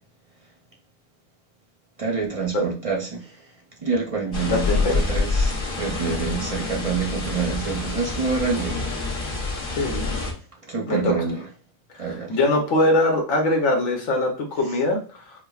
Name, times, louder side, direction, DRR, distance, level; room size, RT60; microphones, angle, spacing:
voice 1, 2.0-3.4 3.8-8.8 10.7-11.4 12.0-12.4, right 4 dB, 45° right, 0.4 m, -27 dB
sound 1, 4.3-10.3, left 3 dB, 45° left, 1.0 m, -27 dB
voice 2, 4.4-5.0 9.7-10.1 10.9-11.1 12.0-15.2, left 2 dB, 85° left, 1.2 m, -22 dB
4.8 x 2.1 x 2.3 m
omnidirectional pair, 1.3 m